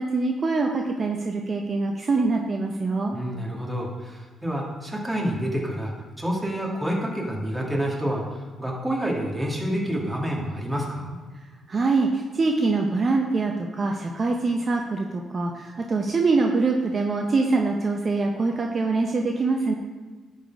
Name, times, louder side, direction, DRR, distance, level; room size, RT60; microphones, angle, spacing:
voice 1, 0.0-3.2 11.7-19.7, right 3 dB, 40° right, 2 dB, 0.7 m, -24 dB
voice 2, 3.1-11.1, equal, 5° right, -3 dB, 2.0 m, -28 dB
11.0 x 4.1 x 4.7 m, 1.3 s
cardioid pair, 90°, 0 cm